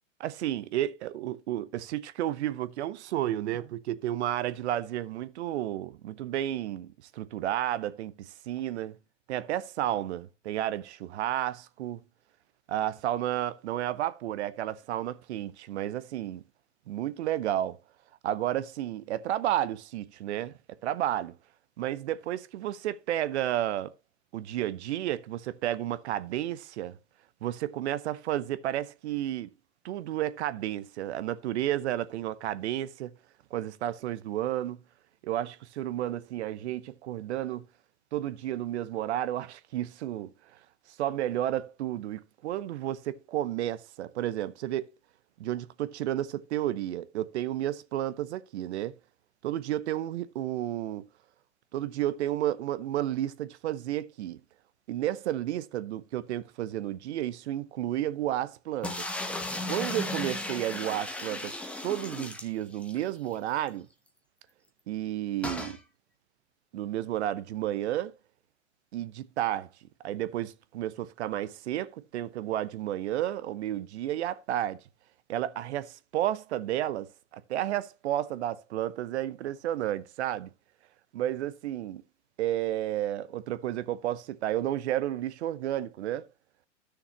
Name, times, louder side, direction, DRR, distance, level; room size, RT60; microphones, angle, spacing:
voice 1, 0.2-9.0 9.3-12.0 12.7-16.4 16.9-17.8 18.2-21.4 21.8-23.9 24.3-27.0 27.4-29.5 29.8-33.1 33.5-34.8 35.2-37.6 38.1-40.3 41.0-44.9 45.4-49.0 49.4-51.0 51.7-54.4 54.9-59.0 59.7-63.9 64.9-65.8 66.7-68.1 68.9-69.7 70.0-74.8 75.3-80.5 81.1-82.0 82.4-86.3, right 12 dB, 60° right, 0.9 m, -32 dB
sound 1, 58.8-63.0 63.4-63.5 63.7-63.8 65.4-65.8, left 2 dB, 5° left, 0.9 m, -35 dB
13.0 x 6.4 x 3.0 m
hypercardioid pair, 120°, 38 cm